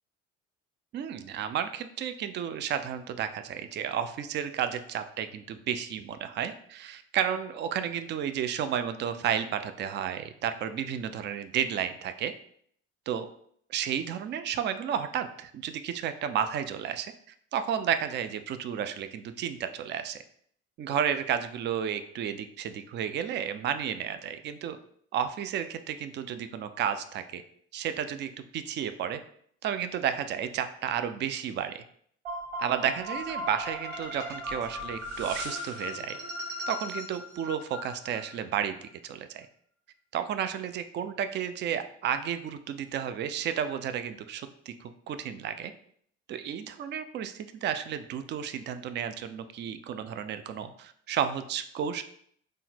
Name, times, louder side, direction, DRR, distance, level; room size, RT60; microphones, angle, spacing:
voice 1, 0.9-12.3 13.1-13.3 13.7-17.1 17.5-20.2 20.8-24.8 25.1-27.4 27.7-29.2 29.6-31.8 32.6-36.2 36.7-39.5 40.1-45.7 46.3-52.0, right 9 dB, 30° right, 10 dB, 0.4 m, -32 dB
sound 1, 32.2-38.3, equal, 70° right, 1.1 m, -37 dB
3.7 x 2.0 x 4.1 m, 0.63 s
hypercardioid pair, 55°, 36 cm